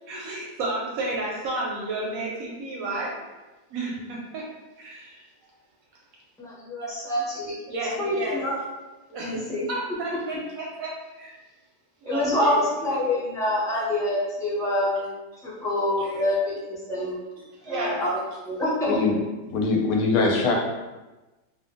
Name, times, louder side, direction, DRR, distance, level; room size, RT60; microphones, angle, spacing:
voice 1, 0.1-3.2 3.7-4.5 4.8-5.2 7.7-8.4 9.1-11.4 12.0-12.6 16.0-16.2 17.6-18.0, right 2 dB, 70° right, -3 dB, 0.9 m, -32 dB
voice 2, 6.4-7.5 8.0-8.6 9.1-9.7 12.0-15.1 15.4-17.2 17.6-18.1 18.4-19.0, left 1 dB, 5° left, -9 dB, 0.4 m, -26 dB
voice 3, 19.5-20.5, left 3 dB, 90° left, 0 dB, 1.2 m, -22 dB
2.5 x 2.4 x 2.5 m, 1.1 s
omnidirectional pair, 1.7 m